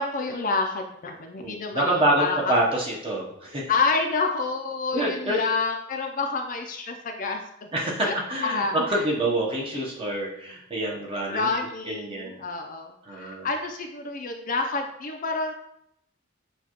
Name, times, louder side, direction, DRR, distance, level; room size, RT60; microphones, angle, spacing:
voice 1, 0.0-2.6 3.7-7.7 8.0-8.1 8.4-9.0 11.3-15.5, left 4 dB, 40° left, 3 dB, 0.4 m, -28 dB
voice 2, 1.4-3.7 4.9-5.4 7.7-11.5 11.9-12.4 13.0-13.5, right 1 dB, 30° right, -3 dB, 0.8 m, -26 dB
6.9 x 2.3 x 2.9 m, 0.75 s
head